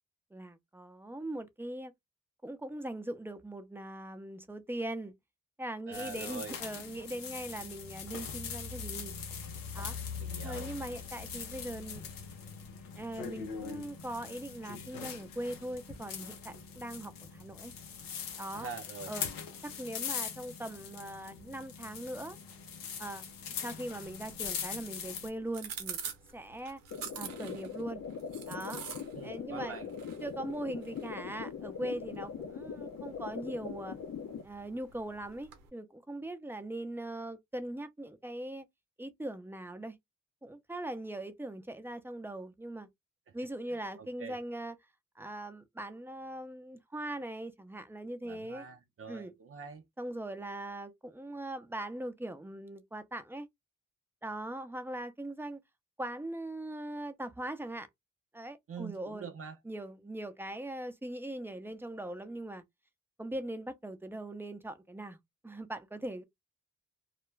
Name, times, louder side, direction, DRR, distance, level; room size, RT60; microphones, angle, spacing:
voice 1, 0.3-1.9 2.4-5.1 5.6-9.1 9.7-10.0 10.4-12.0 12.9-17.7 18.4-18.7 19.1-19.3 19.8-22.4 23.0-23.3 23.6-26.0 26.3-26.8 27.2-28.0 28.5-28.8 29.2-29.7 30.2-34.0 34.4-38.7 39.0-40.0 40.4-42.9 43.3-44.7 45.2-48.6 49.1-49.3 50.0-53.5 54.2-55.6 56.0-57.9 58.3-59.3 59.6-62.6 63.2-65.2 65.4-66.2, right 1 dB, 5° right, 0.7 m, -40 dB
sound 1, 5.9-25.3, left 6 dB, 85° left, 0.7 m, -42 dB
voice 2, 5.9-6.6 10.2-10.7 18.5-19.1 29.1-29.9 43.3-43.4 43.7-44.4 48.2-49.8 58.7-59.6, right 5 dB, 45° right, 0.6 m, -44 dB
sound 2, 24.0-35.7, right 7 dB, 85° right, 0.8 m, -48 dB
sound 3, 26.9-34.4, left 6 dB, 50° left, 0.7 m, -41 dB
2.4 x 2.1 x 3.1 m
supercardioid pair, 45°, 33 cm